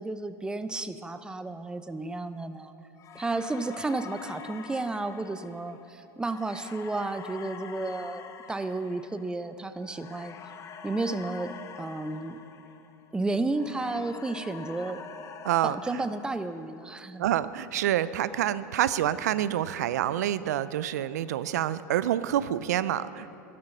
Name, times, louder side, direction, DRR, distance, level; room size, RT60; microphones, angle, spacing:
voice 1, 0.0-2.7 3.1-10.4 10.8-12.4 13.1-15.0 15.6-17.2, right 2 dB, 10° right, 11 dB, 0.7 m, -32 dB
sound 1, 3.0-13.2 13.5-16.9, left 6 dB, 35° left, 1.0 m, -46 dB
voice 2, 15.4-16.0 17.2-23.3, right 11 dB, 80° right, 15 dB, 0.4 m, -27 dB
12.5 x 12.0 x 6.6 m, 2.8 s
hypercardioid pair, 100°, 9 cm